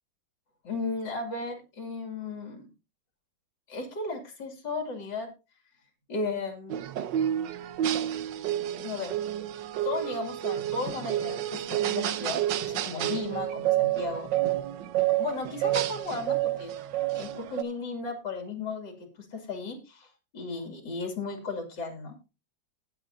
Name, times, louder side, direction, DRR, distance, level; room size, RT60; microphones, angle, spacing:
voice 1, 0.6-2.7 3.7-5.3 6.1-6.8 8.8-9.1 9.8-14.3 15.2-16.7 17.1-22.3, left 3 dB, 65° left, 4 dB, 3.0 m, -35 dB
sound 1, 6.7-17.6, right 12 dB, 75° right, 1.4 m, -29 dB
19.5 x 7.5 x 2.6 m, 0.29 s
omnidirectional pair, 2.1 m